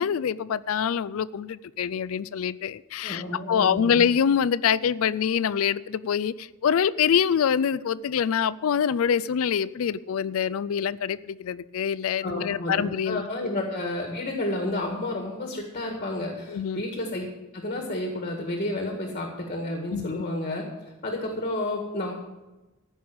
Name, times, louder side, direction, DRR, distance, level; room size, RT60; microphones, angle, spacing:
voice 1, 0.0-13.3 16.5-16.8 19.9-20.2, left 7 dB, 70° left, 0.4 m, -25 dB
voice 2, 3.0-4.0 12.2-17.3 17.5-20.6 21.0-22.1, left 1 dB, 40° left, 1.8 m, -31 dB
14.5 x 5.5 x 8.7 m
head